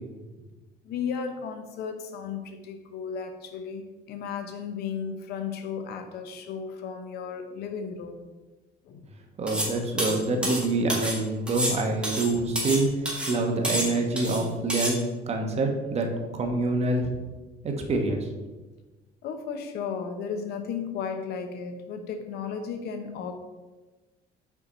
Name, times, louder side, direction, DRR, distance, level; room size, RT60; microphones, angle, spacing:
voice 1, 0.8-8.3 8.8-9.1 19.2-23.4, left 6 dB, 75° left, 7 dB, 0.8 m, -34 dB
voice 2, 9.4-17.1 17.6-18.3, right 2 dB, 40° right, 3 dB, 1.1 m, -26 dB
sound 1, 9.5-9.7 10.0-11.2 11.5-12.8 13.1-13.4 13.6-14.4 14.7-14.9, equal, 5° right, 1.6 m, -29 dB
5.7 x 4.5 x 4.1 m, 1.2 s
cardioid pair, 110°, 17 cm